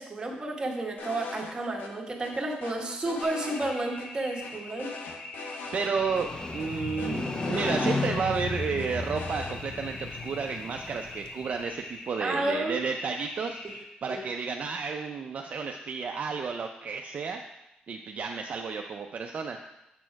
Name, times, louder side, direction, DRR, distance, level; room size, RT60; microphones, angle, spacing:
voice 1, 0.0-4.9 12.2-12.8 13.6-13.7 14.1-14.2, right 2 dB, 25° right, 0 dB, 1.3 m, -31 dB
sound 1, 1.0-1.5 1.8-1.9 2.2-3.7 4.0-4.1 4.4-5.9 6.2-6.3 6.6-8.4 8.8-9.5, left 4 dB, 70° left, 0.9 m, -41 dB
sound 2, 3.2-13.8, left 2 dB, 45° left, 1.2 m, -43 dB
voice 2, 5.7-17.4 17.9-19.6, right 5 dB, 50° right, 3 dB, 0.4 m, -32 dB
Motorcycle, 5.8-11.7, left 3 dB, 25° left, 0.7 m, -34 dB
7.3 x 4.2 x 4.6 m, 0.90 s
cardioid pair, 90°, 3 cm